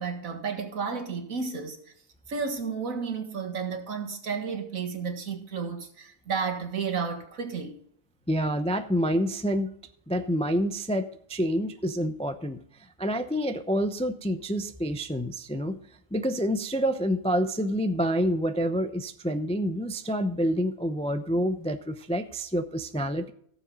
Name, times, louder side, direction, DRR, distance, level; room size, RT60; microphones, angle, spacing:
voice 1, 0.0-1.8 2.3-7.7, right 5 dB, 75° right, 2.0 m, -32 dB
voice 2, 8.3-9.7 10.1-12.6 13.0-15.8 16.1-23.3, equal, 10° left, 0.3 m, -27 dB
17.0 x 7.2 x 3.8 m
omnidirectional pair, 1.4 m